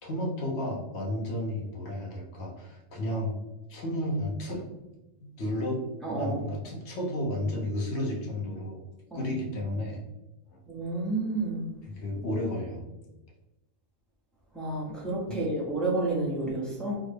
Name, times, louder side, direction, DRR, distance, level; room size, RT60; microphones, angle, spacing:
voice 1, 0.0-3.3 3.7-4.7 5.2-5.8 6.1-8.8 9.1-10.0 11.8-12.8 15.3-15.4, left 1 dB, 75° left, -2 dB, 1.0 m, -32 dB
voice 2, 6.0-6.4 9.1-9.3 10.7-11.6 14.5-17.0, right 2 dB, ahead, -5 dB, 0.5 m, -30 dB
3.6 x 2.0 x 3.2 m, 1.0 s
omnidirectional pair, 1.2 m